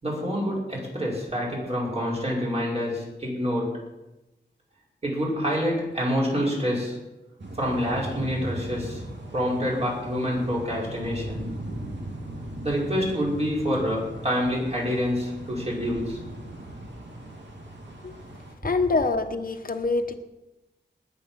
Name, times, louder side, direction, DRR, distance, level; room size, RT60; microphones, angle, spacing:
voice 1, 0.0-3.8 5.0-7.0 7.6-9.0 9.3-11.4 12.6-16.2, equal, 35° right, -4 dB, 5.6 m, -27 dB
sound 1, 7.4-18.5, right 1 dB, 70° right, 2.7 m, -38 dB
voice 2, 18.6-20.1, left 3 dB, 50° left, 7 dB, 1.2 m, -25 dB
20.0 x 8.3 x 6.0 m, 1.0 s
wide cardioid pair, 120°, 19 cm